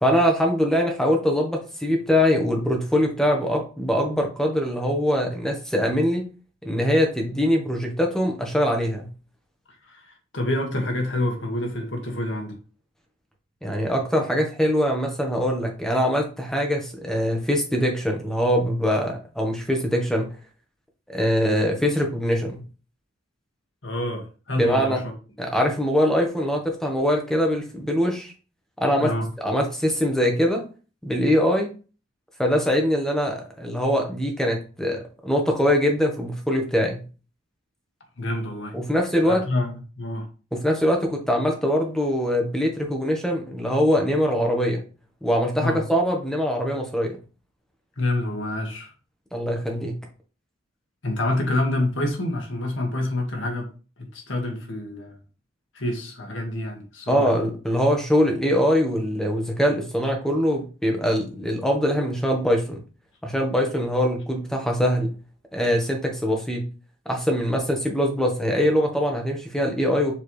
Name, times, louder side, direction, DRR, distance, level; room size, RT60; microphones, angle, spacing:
voice 1, 0.0-6.3 6.6-9.1 13.6-20.3 21.1-22.6 24.5-25.0 25.4-28.3 28.8-29.1 29.4-30.6 31.0-31.7 32.4-37.0 38.7-39.5 40.5-44.8 45.2-47.2 49.3-49.9 57.1-62.8 63.2-65.1 65.5-66.6 67.0-70.2, equal, 5° left, 1.3 m, -23 dB
voice 2, 9.9-12.6 23.8-25.0 29.0-29.3 38.2-38.7 39.3-40.3 45.6-45.8 48.0-48.9 51.0-55.2 55.7-57.3, left 1 dB, 75° left, 1.9 m, -27 dB
6.9 x 4.6 x 3.3 m
head